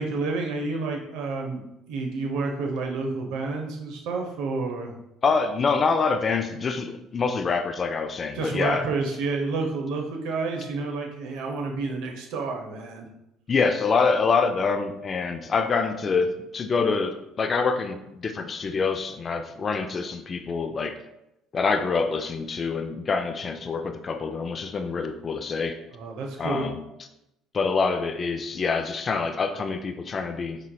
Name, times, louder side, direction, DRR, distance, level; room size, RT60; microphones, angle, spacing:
voice 1, 0.0-1.6 1.9-4.9 8.3-13.1 25.9-26.7, right 3 dB, 80° right, 2 dB, 0.7 m, -29 dB
voice 2, 5.2-8.9 13.5-21.0 21.5-25.8 26.4-26.8 27.5-30.6, left 4 dB, 40° left, 8 dB, 0.3 m, -26 dB
5.0 x 3.1 x 2.2 m, 0.87 s
supercardioid pair, 70°, 0 cm